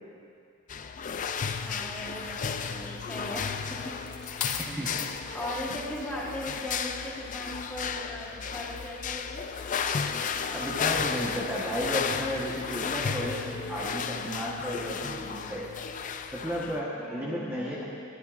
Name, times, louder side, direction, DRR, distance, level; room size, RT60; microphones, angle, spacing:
sound 1, 0.7-16.8, left 6 dB, 35° left, 0.4 m, -33 dB
voice 1, 1.6-4.0 4.8-4.9 5.3-9.5 17.0-17.8, left 1 dB, 5° left, -4 dB, 1.4 m, -39 dB
sound 2, 3.5-5.2 6.0-6.2, left 8 dB, 80° left, 0.8 m, -36 dB
voice 2, 4.6-5.0 10.5-15.7 16.3-17.8, equal, 10° right, -7 dB, 1.1 m, -33 dB
22.0 x 10.5 x 2.5 m, 2.5 s
head